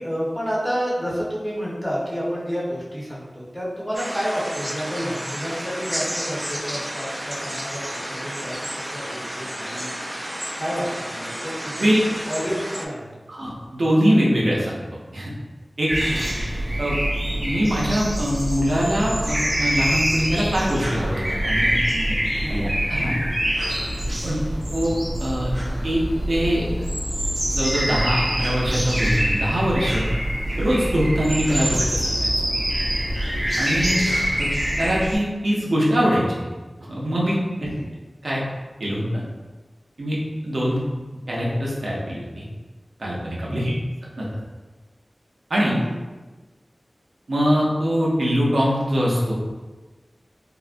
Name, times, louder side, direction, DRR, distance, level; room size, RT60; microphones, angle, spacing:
voice 1, 0.0-8.6 8.9-10.0 10.6-11.9 12.3-13.4 16.0-16.2 22.4-22.6 24.3-24.5 37.6-37.9 43.4-43.7 45.7-45.9, equal, 10° left, -8 dB, 1.0 m, -30 dB
sound 1, 3.9-12.9, equal, 15° right, 0.3 m, -31 dB
voice 2, 13.3-14.8 15.1-15.3 15.8-16.2 16.8-17.0 17.4-22.2 22.5-23.2 24.2-24.4 24.7-24.9 25.2-25.5 25.8-26.0 26.3-26.8 27.5-30.1 30.6-32.5 33.6-34.0 34.4-34.5 34.8-36.4 36.9-37.7 38.2-38.4 38.8-39.2 40.0-40.2 40.4-40.8 41.3-42.4 43.0-43.7 44.2-44.3 45.5-45.8 47.3-49.3, equal, 85° right, -5 dB, 0.6 m, -23 dB
sound 2, 15.9-35.2, right 1 dB, 40° right, 0.7 m, -25 dB
3.6 x 2.1 x 2.5 m, 1.3 s
wide cardioid pair, 70°, 0 cm